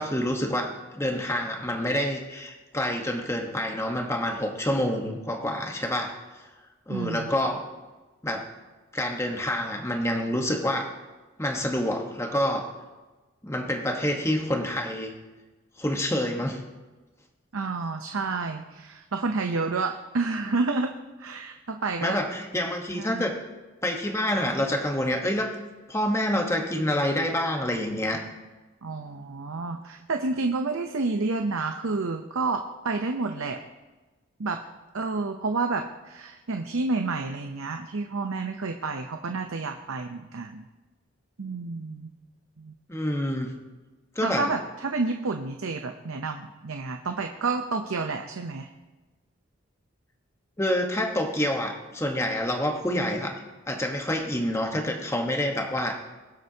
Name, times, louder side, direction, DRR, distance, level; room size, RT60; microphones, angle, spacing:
voice 1, 0.0-6.4 6.9-7.7 8.2-8.5 8.9-10.9 11.4-12.6 13.4-15.1 15.8-16.6 22.0-23.3 23.8-25.5 25.9-28.2 42.9-43.5 44.1-44.5 50.6-53.3 53.7-56.0, left 1 dB, 15° left, 2 dB, 1.2 m, -27 dB
voice 2, 6.9-7.3 17.5-20.9 21.2-22.2 22.9-23.2 28.8-33.6 34.4-34.6 34.9-40.7 41.4-42.1 42.6-42.7 44.2-48.7, right 3 dB, 90° right, 5 dB, 0.7 m, -29 dB
22.5 x 7.8 x 2.9 m, 1.2 s
head